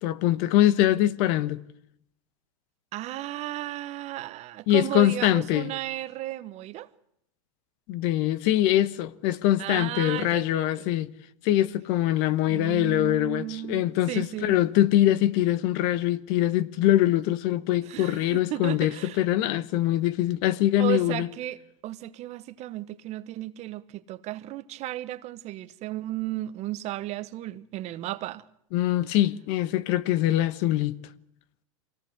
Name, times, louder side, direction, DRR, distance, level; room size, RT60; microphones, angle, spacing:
voice 1, 0.0-1.6 4.7-5.7 7.9-11.1 11.4-21.3 28.7-31.0, left 13 dB, 55° left, 1.3 m, -23 dB
voice 2, 2.9-6.9 9.6-10.9 12.5-14.6 17.8-19.2 20.8-28.4, right 15 dB, 40° right, 1.2 m, -34 dB
24.5 x 18.0 x 8.1 m
supercardioid pair, 125°, 18 cm